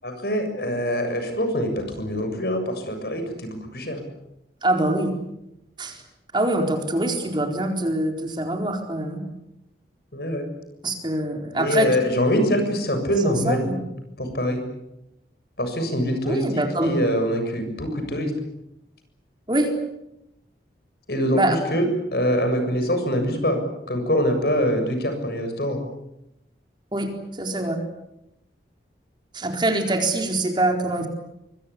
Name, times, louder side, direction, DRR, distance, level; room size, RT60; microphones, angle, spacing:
voice 1, 0.0-4.0 10.1-10.5 11.5-13.7 14.2-14.6 15.6-18.3 21.1-23.6 23.9-25.8, equal, 60° left, 7 dB, 7.1 m, -24 dB
voice 2, 4.6-5.1 5.8-6.0 6.3-9.2 10.8-11.9 13.2-13.8 16.2-17.0 19.5-19.7 21.3-21.6 26.9-27.8 29.3-31.1, right 1 dB, 25° right, 4 dB, 4.2 m, -24 dB
25.0 x 24.5 x 8.5 m, 0.85 s
head